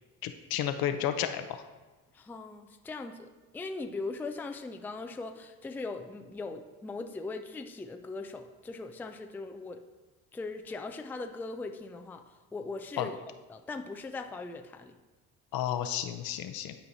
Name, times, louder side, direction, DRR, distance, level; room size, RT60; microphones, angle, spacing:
voice 1, 0.2-1.6 13.0-13.1 15.5-16.7, left 10 dB, 65° left, 8 dB, 0.7 m, -32 dB
voice 2, 2.1-9.8 10.3-12.2 12.5-13.2 13.5-15.0, left 3 dB, 5° left, 5 dB, 0.4 m, -39 dB
11.5 x 4.6 x 2.7 m, 1.2 s
supercardioid pair, 85°, 38 cm